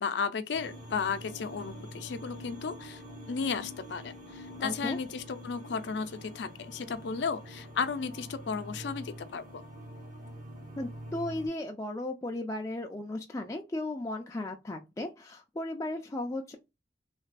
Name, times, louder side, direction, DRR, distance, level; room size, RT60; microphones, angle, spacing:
voice 1, 0.0-3.0 3.3-9.6, left 5 dB, 85° left, 0.4 m, -34 dB
sound 1, 0.5-11.5, equal, 50° right, 1.1 m, -46 dB
voice 2, 4.6-5.0 10.8-16.6, left 1 dB, 20° left, 0.3 m, -35 dB
3.2 x 2.4 x 3.2 m
head